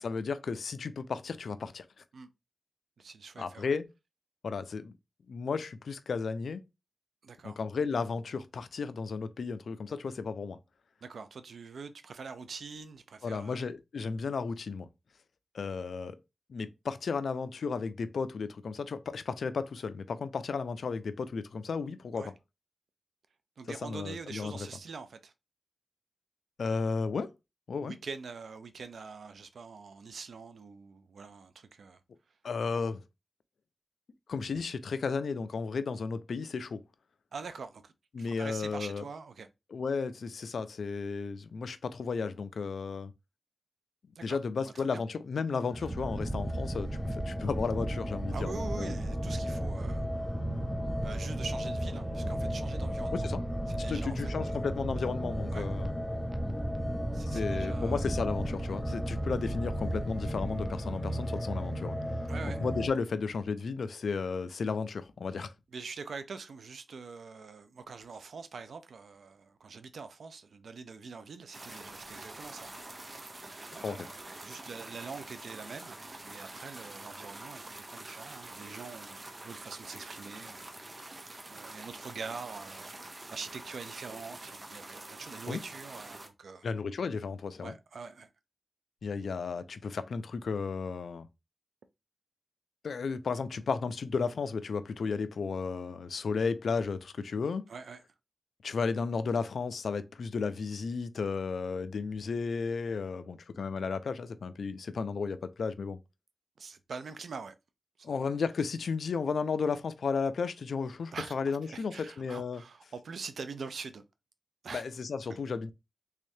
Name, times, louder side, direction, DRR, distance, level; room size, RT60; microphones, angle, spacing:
voice 1, 0.0-1.9 3.4-3.9 4.4-4.9 5.3-6.6 7.4-10.6 13.2-14.9 15.5-16.2 16.5-22.3 23.8-24.5 26.6-27.3 27.7-27.9 32.4-33.0 34.3-36.8 38.1-39.0 39.7-43.1 44.2-48.9 53.1-53.4 53.8-56.0 57.2-62.0 62.6-65.5 73.8-74.1 85.5-85.6 86.6-87.8 89.0-91.3 92.8-97.6 98.6-106.0 108.0-112.6 114.7-115.7, left 5 dB, 85° left, 0.4 m, -34 dB
voice 2, 3.0-3.7 7.2-7.6 11.0-13.6 22.2-22.3 23.6-25.3 27.8-32.0 37.3-39.5 44.2-44.4 44.7-45.0 48.3-50.1 51.0-53.3 53.7-54.6 55.5-55.7 57.1-58.1 62.3-62.7 65.7-72.7 73.1-73.2 73.7-80.7 81.5-82.9 83.3-86.7 87.6-88.3 97.7-98.0 106.6-107.6 108.0-108.3 111.1-111.3 111.7-114.0 114.6-114.8, right 5 dB, 85° right, 0.5 m, -44 dB
sound 1, 45.5-62.9, equal, 20° left, 0.8 m, -36 dB
sound 2, 45.9-60.9, right 1 dB, 10° right, 0.4 m, -36 dB
sound 3, 71.5-86.3, right 2 dB, 35° right, 0.8 m, -46 dB
3.5 x 3.3 x 2.6 m
wide cardioid pair, 80°, 0 cm